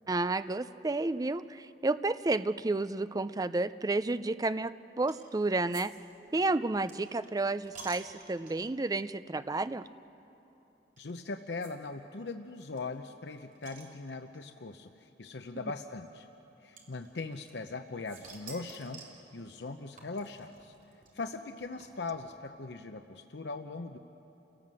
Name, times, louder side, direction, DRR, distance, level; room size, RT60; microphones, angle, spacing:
voice 1, 0.1-1.4 1.8-5.9 6.3-9.8, right 2 dB, 20° right, 13 dB, 0.4 m, -31 dB
sound 1, 5.1-5.4 5.7-5.8 6.1-8.8 9.4-9.6 9.8-9.9 11.0-11.1 11.6-11.7 12.0-12.1 12.3-12.4 12.8-14.4 15.3-15.4 16.8-17.8 18.1-19.2 20.0-22.2, right 5 dB, 50° right, 3.7 m, -51 dB
voice 2, 11.0-16.3 16.6-19.0 19.3-20.7 21.1-24.0, left 3 dB, 75° left, 6 dB, 0.8 m, -40 dB
30.0 x 18.0 x 7.6 m, 3.0 s
head